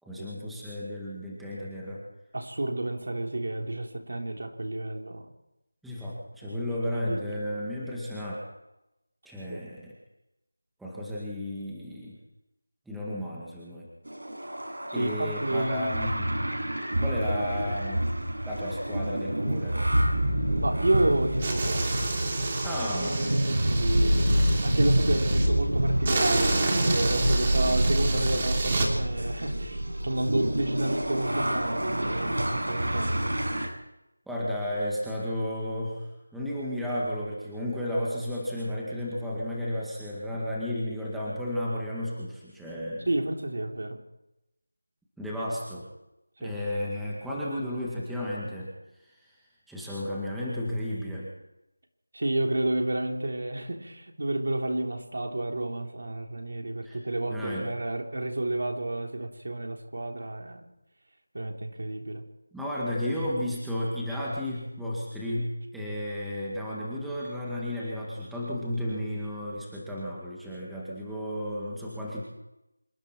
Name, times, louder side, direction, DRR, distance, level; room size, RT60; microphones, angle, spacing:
voice 1, 0.0-2.0 5.8-8.5 9.3-9.9 10.8-12.2 12.9-13.9 14.9-16.2 17.0-18.0 18.5-19.8 22.6-23.4 34.3-43.1 45.2-45.9 46.4-48.7 49.1-49.4 49.7-51.3 56.8-57.0 57.3-57.7 62.5-72.2, left 1 dB, ahead, -7 dB, 2.1 m, -33 dB
voice 2, 2.3-5.3 6.4-6.7 7.1-7.4 9.5-9.6 14.9-16.0 20.6-22.0 23.6-33.3 43.1-44.0 46.4-46.6 52.1-60.7 61.3-62.2, right 1 dB, 60° right, 3 dB, 3.7 m, -30 dB
sound 1, 14.1-33.7, right 1 dB, 85° right, 7.6 m, -27 dB
sound 2, 21.4-25.5 26.0-28.9, right 2 dB, 25° right, 3.2 m, -30 dB
26.5 x 22.5 x 4.6 m, 0.91 s
figure-of-eight pair, 175°, 0 cm